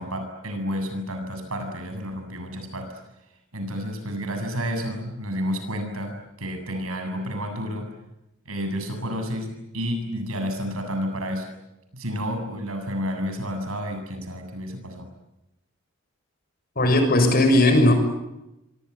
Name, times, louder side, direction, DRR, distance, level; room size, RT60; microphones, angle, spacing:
voice 1, 0.0-2.9 3.5-7.9 8.5-11.5 11.9-15.1, equal, 80° right, 6 dB, 7.8 m, -30 dB
voice 2, 16.8-17.9, left 1 dB, 45° left, 7 dB, 6.7 m, -17 dB
26.5 x 26.0 x 8.4 m, 0.91 s
head